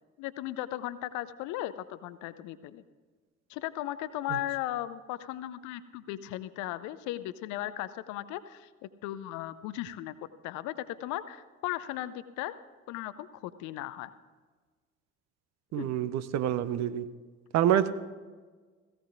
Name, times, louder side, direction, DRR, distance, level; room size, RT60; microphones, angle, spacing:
voice 1, 0.2-2.8 3.5-8.7 9.0-10.1 10.4-12.5 12.9-14.1 15.8-15.9 17.7-17.8, left 14 dB, 55° left, 14 dB, 0.6 m, -36 dB
voice 2, 15.7-17.1 17.5-17.9, right 11 dB, 45° right, 13 dB, 0.7 m, -27 dB
17.5 x 16.0 x 2.6 m, 1.4 s
figure-of-eight pair, 50°, 36 cm